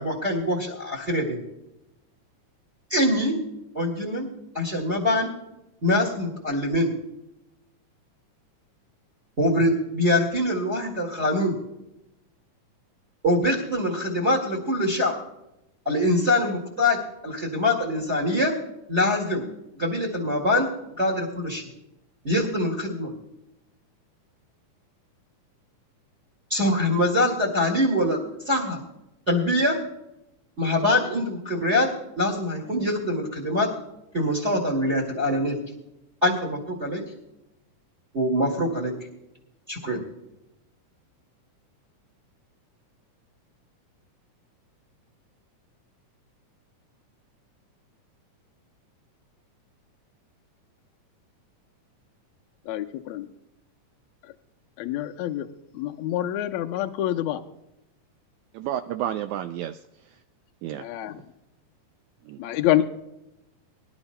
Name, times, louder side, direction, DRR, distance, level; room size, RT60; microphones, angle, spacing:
voice 1, 0.0-1.4 2.9-3.4 3.7-4.3 4.5-5.3 5.8-6.9 9.4-11.6 13.2-15.2 15.9-18.5 18.9-19.4 19.8-20.7 21.0-21.7 22.2-23.1 26.5-28.8 29.3-29.8 30.6-33.7 34.1-35.6 36.2-37.0 38.1-38.9 39.7-40.0, left 1 dB, 25° right, 1 dB, 1.8 m, -24 dB
voice 2, 52.7-53.3 54.8-55.5 55.7-57.4 60.8-61.2 62.4-62.8, left 13 dB, 80° left, 5 dB, 1.7 m, -26 dB
voice 3, 58.5-59.8 60.6-60.9 62.3-62.4, right 11 dB, 80° right, 9 dB, 1.7 m, -30 dB
24.0 x 11.5 x 2.2 m, 0.88 s
omnidirectional pair, 3.7 m